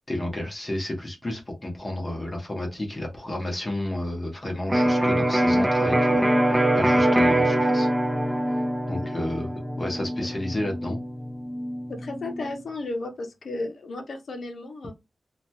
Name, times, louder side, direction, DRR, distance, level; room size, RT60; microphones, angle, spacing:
voice 1, 0.1-7.9 8.9-11.0, left 1 dB, 25° left, 0.9 m, -31 dB
Electric guitar, 4.7-12.5, right 1 dB, 10° right, 0.3 m, -23 dB
voice 2, 11.9-14.9, left 2 dB, 70° left, 0.6 m, -34 dB
2.8 x 2.2 x 2.8 m
wide cardioid pair, 125°, 0 cm